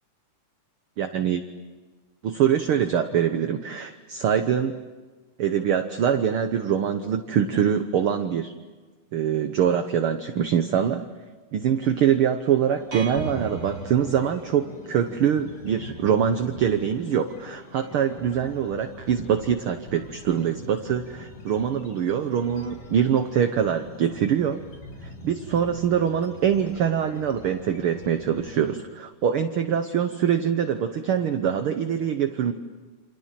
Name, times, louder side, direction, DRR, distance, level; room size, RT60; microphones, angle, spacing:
voice 1, 1.0-1.4 2.2-4.8 5.4-8.5 9.1-11.0 11.5-24.6 25.0-32.5, right 8 dB, 65° right, 8 dB, 1.4 m, -24 dB
sound 1, 12.8-28.8, left 2 dB, 80° left, 5.0 m, -44 dB
sound 2, 12.9-14.9, right 4 dB, 40° right, 4.0 m, -34 dB
28.5 x 26.5 x 7.5 m, 1.3 s
omnidirectional pair, 3.7 m